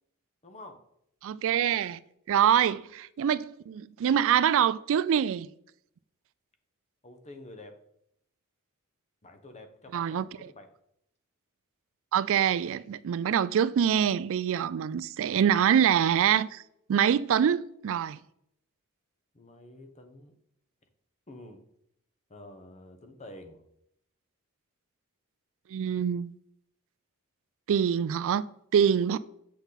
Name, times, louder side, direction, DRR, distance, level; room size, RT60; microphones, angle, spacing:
voice 1, 0.4-0.8 2.3-2.5 7.0-7.8 9.2-10.7 19.3-20.4 21.3-21.6 22.3-23.6, left 1 dB, 30° left, 1.0 m, -48 dB
voice 2, 1.2-2.0 2.3-5.5 9.9-10.3 12.1-16.6 16.9-18.2 25.7-26.3 27.7-28.4 28.7-29.2, right 8 dB, 60° right, 0.3 m, -25 dB
8.1 x 6.7 x 4.1 m
head